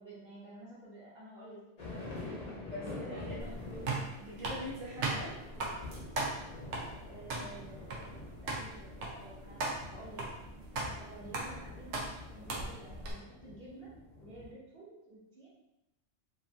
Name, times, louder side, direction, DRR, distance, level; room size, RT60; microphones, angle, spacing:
voice 1, 0.0-4.1 7.1-8.2 8.4-9.6 9.9-10.3 10.9-12.0 12.3-15.5, right 1 dB, 55° right, -7 dB, 1.0 m, -51 dB
sound 1, 1.8-14.5, left 2 dB, 50° left, 0.6 m, -47 dB
voice 2, 2.7-3.4 4.2-5.4 12.5-12.7, equal, 35° right, -7 dB, 0.7 m, -43 dB
sound 2, 3.4-13.1, right 2 dB, 70° right, 0.9 m, -39 dB
2.6 x 2.5 x 2.5 m, 0.90 s
omnidirectional pair, 1.3 m